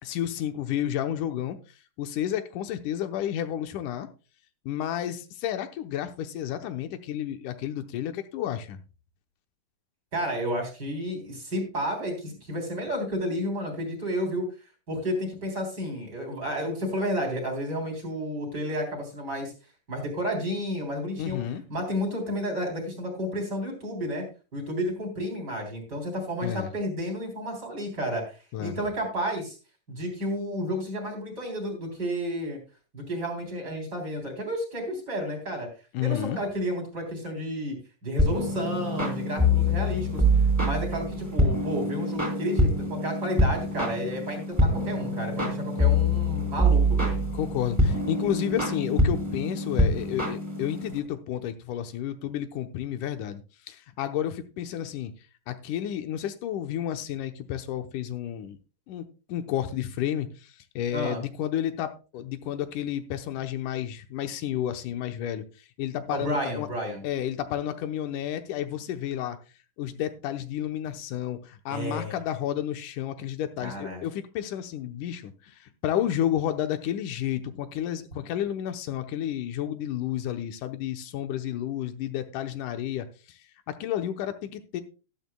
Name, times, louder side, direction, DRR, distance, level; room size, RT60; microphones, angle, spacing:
voice 1, 0.0-1.6 2.0-4.1 4.7-8.8 21.2-21.6 26.4-26.7 28.5-28.8 35.9-36.4 47.3-53.4 53.7-55.1 55.5-58.6 58.9-65.4 65.8-66.7 67.0-69.4 69.8-83.4 83.7-84.8, left 11 dB, 85° left, 8 dB, 2.4 m, -31 dB
voice 2, 10.1-14.4 14.9-19.5 19.9-21.4 21.7-24.2 24.5-29.6 29.9-32.6 32.9-35.7 36.0-37.8 38.0-40.2 40.6-47.2 60.9-61.2 66.1-67.0 71.7-72.1 73.6-74.0, equal, 30° right, 2 dB, 3.9 m, -31 dB
sound 1, 38.2-51.0, equal, 5° right, 3.1 m, -25 dB
13.0 x 12.5 x 2.2 m, 0.33 s
omnidirectional pair, 3.6 m